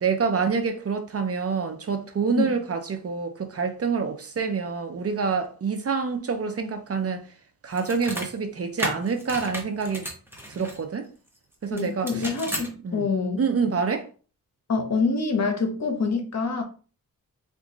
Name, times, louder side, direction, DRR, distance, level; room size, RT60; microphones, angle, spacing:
voice 1, 0.0-7.3 7.6-10.0 10.5-11.1 11.6-12.3 12.8-13.1 13.4-14.1, right 5 dB, 45° right, 0.6 m, -27 dB
sound 1, 7.7-8.3 8.8-10.8 11.8-12.7, equal, 5° right, 0.9 m, -34 dB
voice 2, 11.7-13.4 14.7-16.6, left 4 dB, 50° left, 0.9 m, -26 dB
2.9 x 2.4 x 3.8 m
cardioid pair, 70°, 35 cm